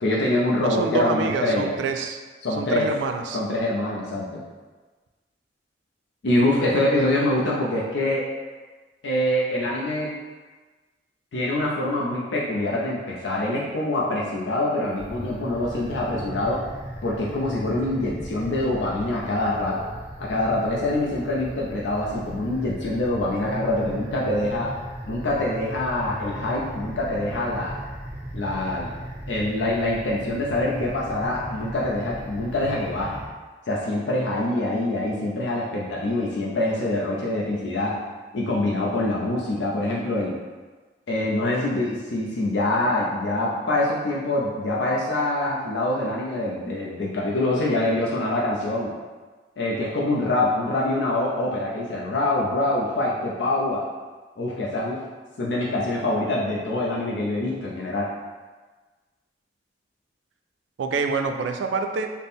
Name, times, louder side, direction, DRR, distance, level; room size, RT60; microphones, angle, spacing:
voice 1, 0.0-1.7 2.4-2.9 3.3-4.4 6.2-8.3 9.0-10.1 11.3-16.6 17.0-19.8 20.2-24.7 25.1-27.8 28.3-28.9 29.3-33.2 33.7-38.0 38.3-40.4 41.1-48.9 49.6-53.8 54.4-55.0 55.4-58.1, left 1 dB, 75° left, -4 dB, 0.5 m, -25 dB
voice 2, 0.6-2.2 2.5-3.4 60.8-62.1, right 4 dB, 85° right, 5 dB, 0.3 m, -27 dB
sound 1, 14.9-33.3, right 1 dB, 10° right, 0.5 m, -37 dB
4.1 x 2.1 x 3.5 m, 1.3 s
head